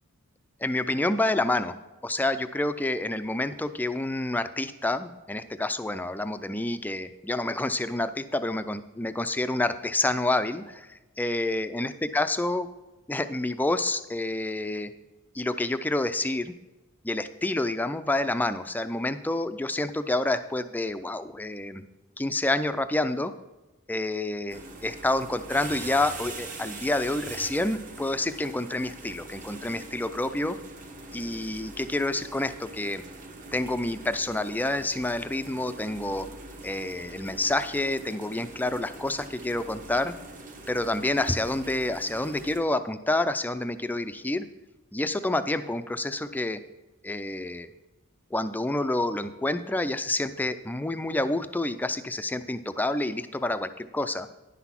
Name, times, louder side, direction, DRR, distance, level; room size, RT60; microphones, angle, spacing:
voice 1, 0.6-1.7 2.0-12.7 13.1-14.9 15.3-16.5 17.0-21.8 22.2-23.3 23.9-30.6 31.1-33.0 33.5-36.3 36.6-40.1 40.7-44.5 44.9-46.6 47.0-47.7 48.3-54.3, left 2 dB, 10° left, 11 dB, 0.4 m, -28 dB
sound 1, 24.5-42.6, right 2 dB, 35° right, 1.0 m, -43 dB
10.0 x 6.0 x 5.8 m, 1.1 s
head